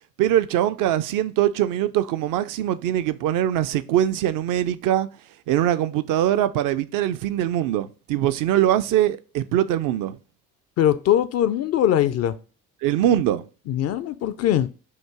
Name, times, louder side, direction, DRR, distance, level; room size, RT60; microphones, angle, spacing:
voice 1, 0.2-5.1 5.5-10.2 12.8-13.4, right 12 dB, 45° right, 0.5 m, -22 dB
voice 2, 10.8-12.4 13.7-14.7, left 11 dB, 35° left, 0.4 m, -21 dB
5.8 x 2.5 x 3.5 m
figure-of-eight pair, 45°, 46 cm